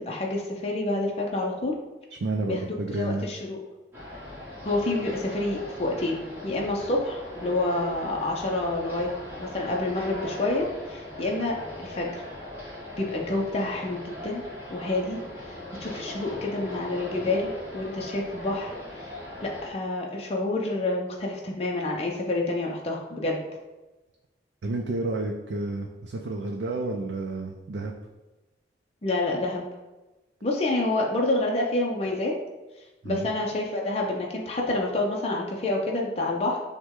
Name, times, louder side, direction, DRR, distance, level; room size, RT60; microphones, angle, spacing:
voice 1, 0.1-1.7 2.5-2.6 2.9-3.6 4.6-6.2 6.4-9.1 9.4-12.2 13.0-14.4 14.7-15.2 15.4-15.5 15.8-19.1 19.4-23.4 29.0-29.6 30.4-32.3 33.0-36.6, left 2 dB, 35° left, -1 dB, 0.5 m, -28 dB
voice 2, 2.2-3.2 24.6-27.9 33.0-33.3, right 2 dB, 80° right, 1 dB, 0.4 m, -30 dB
sound 1, 3.9-19.7, left 1 dB, 15° right, 1.2 m, -39 dB
5.9 x 2.2 x 3.6 m, 1.1 s
head